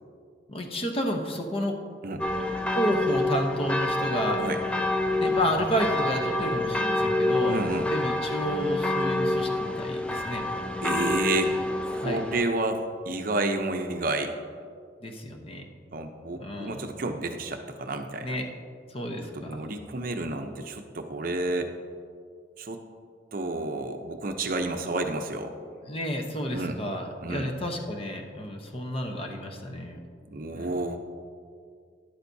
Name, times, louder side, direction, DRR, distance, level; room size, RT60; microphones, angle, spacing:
voice 1, 0.5-1.7 2.7-4.4 5.2-7.6 7.9-10.4 12.0-12.2 15.0-15.7 16.4-16.9 18.2-18.5 18.9-19.7 25.8-30.0 30.5-30.8, equal, 30° left, 3 dB, 0.8 m, -31 dB
sound 1, 2.2-12.4, left 2 dB, 5° left, 0.4 m, -27 dB
voice 2, 7.5-7.9 10.8-11.5 11.8-14.3 15.9-18.4 19.3-21.7 22.6-22.8 23.3-25.5 26.5-26.8 27.2-27.5 30.3-31.0, right 2 dB, 50° right, 5 dB, 0.6 m, -30 dB
13.0 x 10.5 x 2.7 m, 2.2 s
head